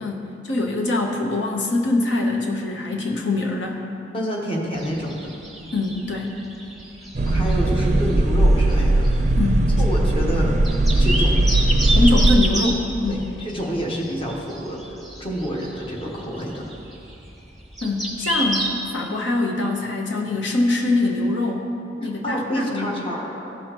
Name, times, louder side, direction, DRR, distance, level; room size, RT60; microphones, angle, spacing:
voice 1, 0.0-3.8 5.7-6.3 9.4-9.7 11.9-13.2 17.8-21.7 22.0-22.9, left 2 dB, 80° left, 1 dB, 0.9 m, -23 dB
voice 2, 4.1-5.4 7.2-9.1 9.8-10.5 10.8-11.5 13.1-14.8 15.2-16.7 22.2-23.4, equal, 30° left, -2 dB, 1.2 m, -28 dB
sound 1, 4.8-18.7, right 1 dB, ahead, 1.0 m, -30 dB
sound 2, 7.1-12.4, right 1 dB, 40° right, 0.4 m, -18 dB
15.5 x 6.2 x 3.0 m, 2.7 s
head